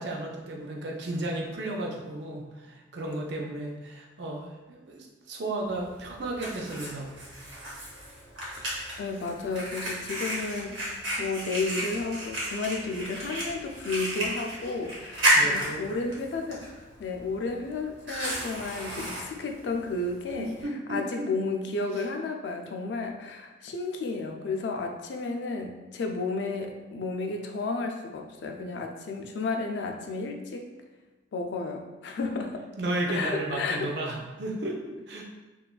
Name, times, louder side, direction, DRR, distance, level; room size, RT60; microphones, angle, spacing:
voice 1, 0.0-7.3 15.3-15.8 20.4-21.3 32.8-35.3, right 1 dB, 65° right, -1 dB, 0.4 m, -34 dB
Fire, 5.7-20.6, right 1 dB, 80° right, 0.9 m, -33 dB
voice 2, 8.5-16.7 17.0-20.6 20.9-30.7 31.3-32.7 33.1-33.9, left 3 dB, 65° left, 3 dB, 0.3 m, -32 dB
2.9 x 2.3 x 2.3 m, 1.2 s
head